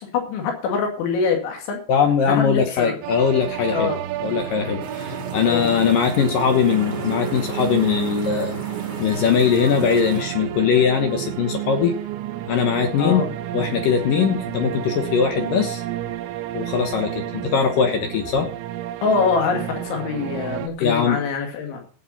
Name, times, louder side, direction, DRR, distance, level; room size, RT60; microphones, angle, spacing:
voice 1, 0.0-1.8 2.3-3.0 3.7-4.0 5.5-5.7 13.0-13.3 19.0-21.8, left 5 dB, 85° left, 2 dB, 4.8 m, -24 dB
voice 2, 1.9-3.9 4.2-8.6 9.0-11.9 12.5-13.2 13.5-15.8 16.5-18.5 20.8-21.2, left 7 dB, 65° left, 5 dB, 2.2 m, -21 dB
sound 1, 3.0-20.7, right 13 dB, 85° right, 3.2 m, -31 dB
sound 2, 4.8-10.2, right 1 dB, 30° right, 0.9 m, -36 dB
16.5 x 8.3 x 4.1 m, 0.40 s
omnidirectional pair, 5.2 m